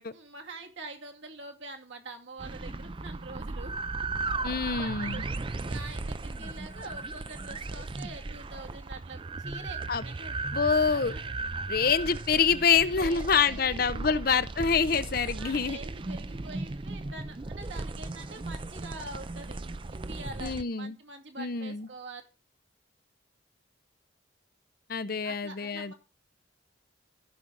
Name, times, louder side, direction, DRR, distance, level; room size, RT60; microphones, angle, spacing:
voice 1, 0.1-3.8 4.8-5.2 5.6-10.4 10.9-11.3 12.7-14.2 15.4-19.6 19.9-22.2 25.2-25.9, right 2 dB, 70° right, 2.3 m, -45 dB
sound 1, 2.4-20.6, right 3 dB, 25° right, 0.4 m, -36 dB
voice 2, 4.4-5.2 9.9-10.0 10.5-11.2 11.7-15.8 20.4-21.0 21.4-21.9 24.9-25.9, left 6 dB, 50° left, 0.6 m, -26 dB
14.5 x 6.3 x 3.9 m
head